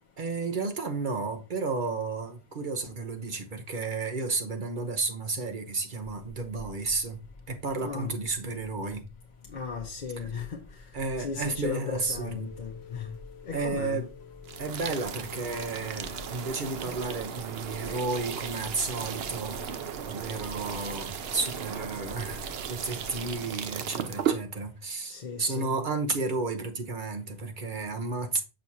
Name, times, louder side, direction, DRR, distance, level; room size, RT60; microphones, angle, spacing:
voice 1, 0.2-7.2 7.5-9.1 10.2-10.3 10.9-12.5 13.5-14.0 14.6-19.6 20.0-28.4, right 3 dB, 50° right, 1.1 m, -32 dB
sound 1, 6.0-23.3, left 3 dB, 35° left, 0.4 m, -50 dB
voice 2, 7.8-8.2 9.5-10.8 11.2-13.2 13.5-14.0 25.1-25.8, left 6 dB, 50° left, 0.9 m, -36 dB
Rain, 11.1-16.8, left 8 dB, 85° left, 1.1 m, -50 dB
sound 2, 14.4-24.4, right 8 dB, 75° right, 0.9 m, -36 dB
6.6 x 6.0 x 2.8 m
omnidirectional pair, 1.1 m